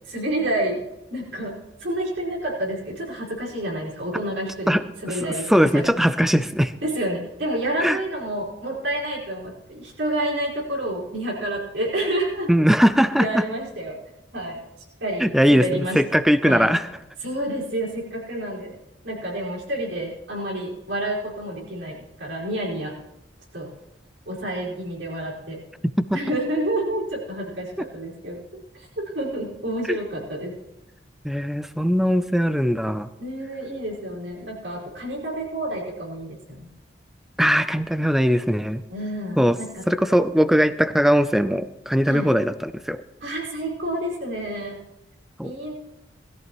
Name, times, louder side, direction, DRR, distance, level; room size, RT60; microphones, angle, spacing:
voice 1, 0.1-0.8 1.1-4.8 5.0-6.0 6.8-12.5 13.2-14.0 14.3-14.6 15.0-16.0 16.4-16.7 17.2-18.7 19.0-22.9 23.5-23.7 24.2-25.6 26.1-28.4 28.7-30.5 33.2-36.7 38.9-39.8 42.1-42.3 43.2-44.8 45.4-45.7, right 1 dB, 75° right, -4 dB, 5.0 m, -29 dB
voice 2, 5.5-6.7 7.8-8.0 12.5-13.5 15.2-16.9 26.0-26.2 29.9-30.0 31.2-33.1 37.4-38.8 39.4-39.6 39.9-43.0 45.4-45.5, equal, ahead, 12 dB, 0.5 m, -20 dB
20.5 x 14.0 x 3.0 m, 0.91 s
head